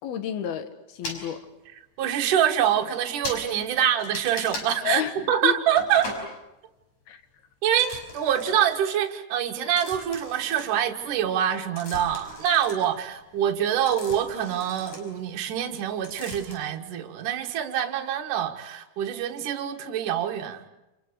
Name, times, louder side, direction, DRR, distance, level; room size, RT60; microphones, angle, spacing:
voice 1, 0.0-1.4 4.8-5.6 7.1-7.2, left 9 dB, 80° left, 9 dB, 3.5 m, -30 dB
sound 1, 1.0-1.2 2.1-2.2 2.5-2.6 2.8-3.0 3.2-3.4 4.0-4.7 5.8-6.3 7.7-8.8 9.8-11.1 11.5-15.8 16.0-16.6, left 2 dB, 50° left, 6.7 m, -39 dB
voice 2, 2.0-6.1 7.6-20.6, right 9 dB, 60° right, 2 dB, 3.0 m, -25 dB
29.5 x 28.5 x 6.7 m, 0.99 s
omnidirectional pair, 4.3 m